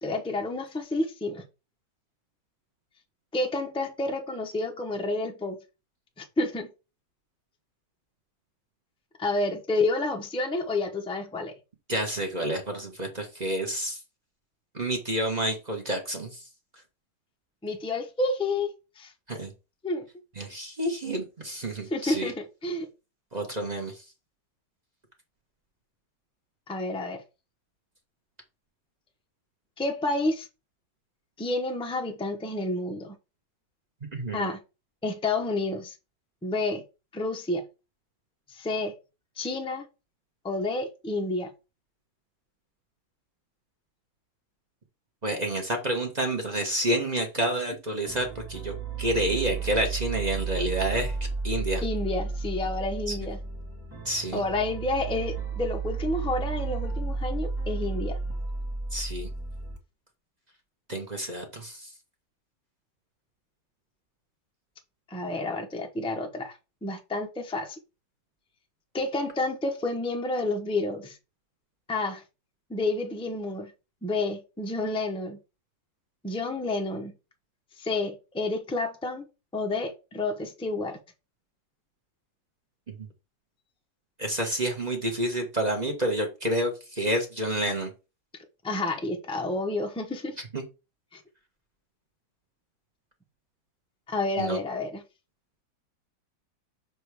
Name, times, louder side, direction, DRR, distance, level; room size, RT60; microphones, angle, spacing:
voice 1, 0.0-1.4 3.3-5.6 6.2-6.7 9.2-11.5 17.6-19.1 19.8-20.1 21.9-22.9 26.7-27.2 29.8-30.5 31.4-33.1 34.3-34.6 35.0-35.9 36.4-36.8 37.1-37.6 38.5-38.9 39.4-39.9 40.4-41.5 51.8-53.4 54.3-58.2 65.1-67.8 68.9-71.2 71.9-72.2 72.7-73.7 74.0-75.4 76.2-77.1 77.8-79.3 79.5-81.0 88.6-90.4 91.1-91.2 94.1-95.0, left 2 dB, 5° left, 0.4 m, -30 dB
voice 2, 11.9-14.0 14.7-16.4 19.3-19.5 20.4-22.3 23.3-24.0 34.1-34.5 45.2-51.2 51.4-51.8 53.1-53.2 54.0-54.4 58.9-59.3 60.9-61.9 83.0-83.1 84.2-87.9 90.5-90.6 94.4-94.6, right 1 dB, 30° right, 0.9 m, -29 dB
sound 1, 48.1-59.8, right 4 dB, 10° right, 1.4 m, -33 dB
6.8 x 3.1 x 4.7 m
omnidirectional pair, 1.9 m